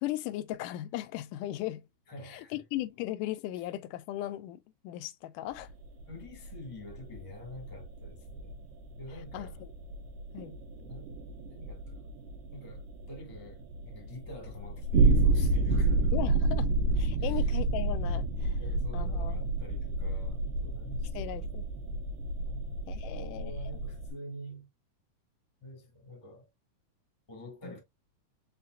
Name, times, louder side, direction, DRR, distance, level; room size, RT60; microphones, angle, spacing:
voice 1, 0.0-1.8 2.3-5.7 9.3-9.7 10.3-10.6 16.1-16.7 17.0-18.6 18.9-19.5 21.1-21.6 22.9-23.5 27.6-27.7, left 14 dB, 85° left, 2.1 m, -37 dB
voice 2, 2.1-2.6 3.6-3.7 6.0-8.6 9.0-9.6 10.8-12.1 12.5-16.1 17.2-17.5 18.6-21.5 22.4-22.7 23.0-24.7 25.6-26.5 27.3-27.8, left 1 dB, 15° left, 1.2 m, -47 dB
sound 1, 5.6-24.1, right 3 dB, 90° right, 2.3 m, -30 dB
5.7 x 3.9 x 2.4 m
omnidirectional pair, 3.7 m